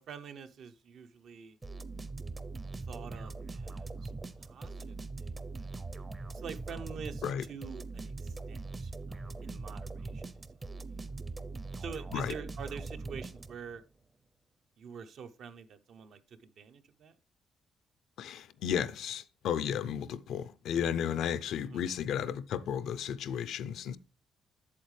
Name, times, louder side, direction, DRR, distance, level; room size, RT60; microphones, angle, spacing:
voice 1, 0.0-1.6 2.9-4.1 4.4-5.7 6.3-10.7 11.8-13.8 14.8-17.2 21.6-21.8, right 6 dB, 70° right, 0.7 m, -46 dB
sound 1, 1.6-13.8, right 3 dB, 25° right, 0.6 m, -41 dB
voice 2, 18.2-24.0, left 8 dB, 80° left, 0.5 m, -33 dB
8.5 x 7.3 x 3.2 m
cardioid pair, 90°, 0 cm